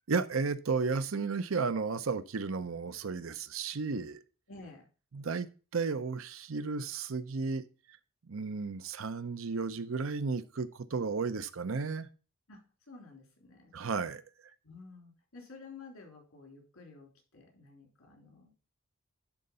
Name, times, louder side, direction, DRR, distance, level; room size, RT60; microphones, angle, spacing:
voice 1, 0.1-4.2 5.1-7.6 8.3-12.1 13.7-14.2, right 4 dB, 70° right, 0.6 m, -33 dB
voice 2, 4.5-4.8 12.5-12.6 12.9-13.7 14.6-18.5, left 3 dB, 80° left, 3.4 m, -51 dB
11.0 x 3.8 x 5.4 m
head